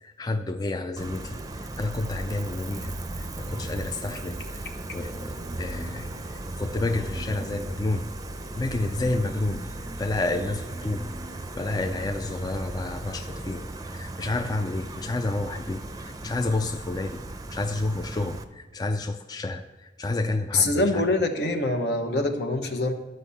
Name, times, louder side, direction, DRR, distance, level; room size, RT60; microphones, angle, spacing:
voice 1, 0.0-4.6 4.9-8.1 8.6-17.2 17.5-21.0, left 2 dB, 25° left, 6 dB, 0.4 m, -30 dB
Gull seagull, 1.0-18.4, right 2 dB, 20° right, 0.6 m, -36 dB
voice 2, 20.5-22.9, left 2 dB, 65° left, 5 dB, 1.1 m, -24 dB
13.0 x 5.3 x 7.0 m, 1.1 s
head